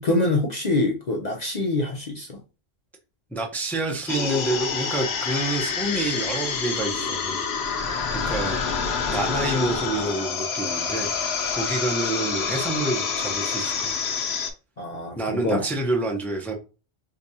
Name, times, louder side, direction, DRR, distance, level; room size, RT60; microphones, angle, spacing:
voice 1, 0.0-2.3 14.8-15.2 15.4-15.6, left 2 dB, 50° left, 0.5 m, -24 dB
voice 2, 3.3-7.4 7.8-14.0 15.2-16.5, right 2 dB, ahead, 0.5 m, -28 dB
sound 1, 4.1-14.5, left 5 dB, 65° left, 0.9 m, -27 dB
4.6 x 2.3 x 2.6 m
omnidirectional pair, 1.2 m